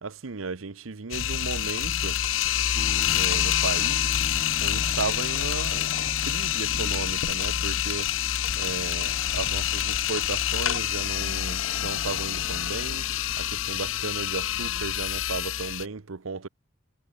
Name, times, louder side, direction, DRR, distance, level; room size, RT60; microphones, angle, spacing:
voice 1, 0.0-2.2 3.1-4.2 4.6-5.9 6.2-8.1 8.5-13.0 13.4-16.5, right 4 dB, 85° right, 0.9 m, -35 dB
sound 1, 1.1-15.9, left 11 dB, 75° left, 0.7 m, -27 dB
sound 2, 2.8-14.8, left 3 dB, 50° left, 0.9 m, -42 dB
head